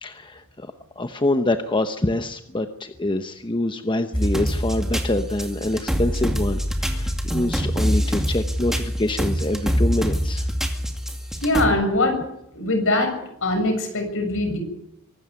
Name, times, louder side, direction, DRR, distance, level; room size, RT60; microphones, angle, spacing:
voice 1, 0.0-10.5 11.3-11.4, left 1 dB, 20° left, 8 dB, 0.9 m, -25 dB
sound 1, 4.1-11.7, equal, ahead, 2.3 m, -25 dB
voice 2, 11.4-12.2 12.5-13.1 13.4-14.6, left 2 dB, 60° left, 5 dB, 7.0 m, -22 dB
24.0 x 13.0 x 9.6 m, 0.80 s
head